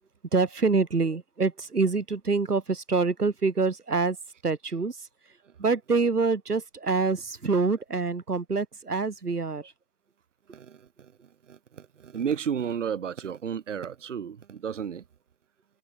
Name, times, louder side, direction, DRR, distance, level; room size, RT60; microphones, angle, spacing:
voice 1, 0.3-4.2 4.4-5.1 5.6-9.7, right 4 dB, 80° right, 4.1 m, -26 dB
voice 2, 10.5-15.0, right 7 dB, 50° right, 3.3 m, -33 dB
figure-of-eight pair, 145°, 45 cm